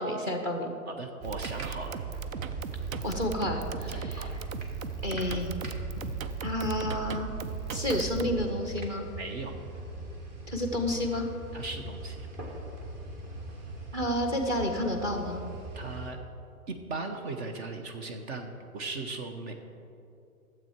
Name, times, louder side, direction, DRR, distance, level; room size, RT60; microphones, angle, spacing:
voice 1, 0.0-0.7 3.0-4.3 5.0-5.6 6.4-7.3 7.7-9.1 10.5-11.3 13.9-15.4, left 1 dB, 10° right, 4 dB, 0.6 m, -30 dB
voice 2, 0.9-2.0 3.9-4.4 9.2-9.5 11.5-12.3 15.7-16.2 16.7-19.5, right 3 dB, 45° right, 5 dB, 1.0 m, -38 dB
sound 1, 1.2-16.1, right 1 dB, 30° right, 1.5 m, -41 dB
sound 2, 1.2-8.4, right 7 dB, 65° right, 0.7 m, -37 dB
12.0 x 7.7 x 4.5 m, 2.7 s
hypercardioid pair, 145°, 44 cm